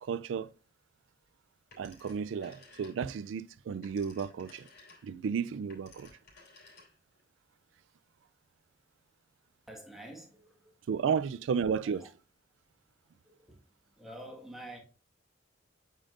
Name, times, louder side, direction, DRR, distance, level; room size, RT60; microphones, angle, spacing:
voice 1, 0.0-0.5 1.8-4.7 5.0-6.1 10.9-12.1, right 6 dB, 70° right, 0.3 m, -33 dB
Telephone, 1.7-3.3 3.6-7.2, left 3 dB, 55° left, 3.6 m, -57 dB
voice 2, 9.7-10.7 11.8-12.1 13.2-13.6 14.0-14.8, right 1 dB, ahead, 1.5 m, -48 dB
8.7 x 5.5 x 2.5 m
head